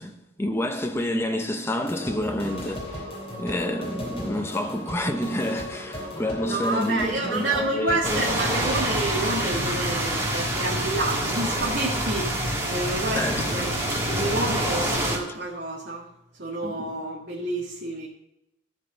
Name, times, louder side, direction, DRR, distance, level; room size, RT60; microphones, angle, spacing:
voice 1, 0.0-3.1 3.4-8.2 13.1-13.7 16.6-16.8, left 1 dB, 15° left, 0.9 m, -28 dB
sound 1, 1.8-8.8, left 1 dB, 30° left, 3.1 m, -36 dB
voice 2, 6.5-13.7 14.0-16.0 16.4-18.1, right 2 dB, 60° right, 1.8 m, -29 dB
sound 2, 8.0-15.2, right 1 dB, 15° right, 1.8 m, -26 dB
13.5 x 4.7 x 6.6 m
head